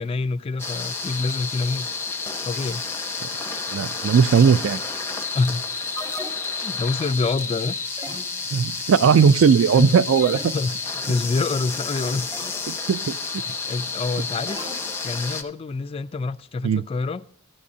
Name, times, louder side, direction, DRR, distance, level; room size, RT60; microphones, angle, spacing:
voice 1, 0.0-2.0 2.4-2.8 5.3-5.7 6.5-7.8 9.8-9.9 10.5-12.3 13.0-13.2 13.7-14.6 15.0-17.2, left 3 dB, 30° left, 0.3 m, -26 dB
sound 1, 0.6-15.4, left 4 dB, 10° left, 0.7 m, -30 dB
voice 2, 3.7-4.8 8.5-10.5 12.7-13.4 16.6-16.8, right 6 dB, 75° right, 0.3 m, -18 dB
sound 2, 6.0-6.9 8.0-8.7 10.2-11.0 12.3-12.9 14.5-15.4, equal, 20° right, 1.7 m, -39 dB
13.0 x 8.5 x 2.6 m
head